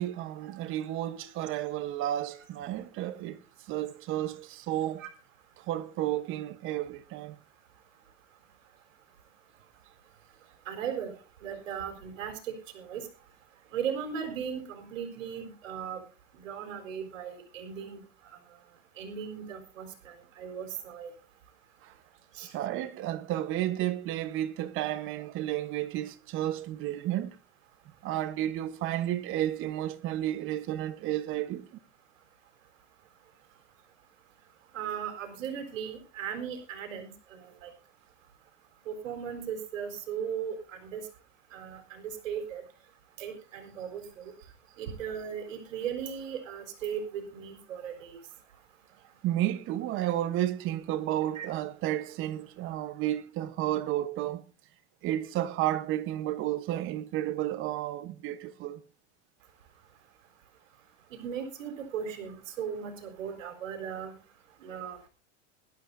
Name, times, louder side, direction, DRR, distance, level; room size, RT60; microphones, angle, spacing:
voice 1, 0.0-3.4 3.7-5.0 5.7-7.3 22.5-27.3 28.0-31.7 49.2-54.4 55.0-58.8, right 13 dB, 35° right, 1.1 m, -32 dB
voice 2, 10.7-11.1 11.4-13.1 13.7-16.0 16.4-18.0 19.0-21.1 22.4-22.5 34.7-37.7 38.9-41.0 41.5-42.6 43.2-44.3 44.8-48.2 51.3-51.5 61.1-64.1 64.6-65.1, right 8 dB, 90° right, 4.1 m, -37 dB
21.0 x 12.5 x 2.7 m
supercardioid pair, 150°, 38 cm